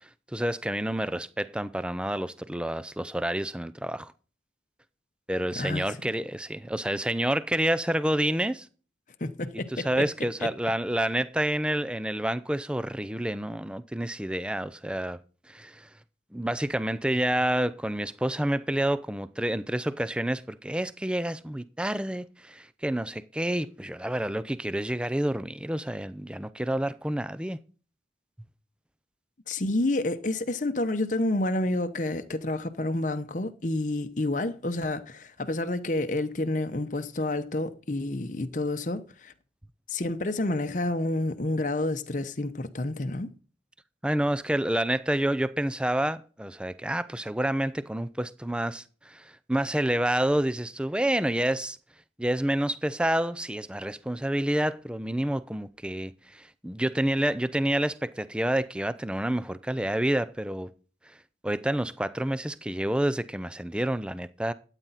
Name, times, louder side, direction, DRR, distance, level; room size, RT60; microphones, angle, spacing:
voice 1, 0.3-4.1 5.3-8.7 9.7-15.2 15.5-15.9 16.3-27.6 44.0-51.8 52.2-60.7 61.4-64.5, right 1 dB, 5° right, 0.5 m, -28 dB
voice 2, 5.6-6.0 9.2-9.9 29.5-39.3 39.9-43.3, left 2 dB, 45° left, 0.8 m, -29 dB
13.5 x 9.0 x 4.1 m
head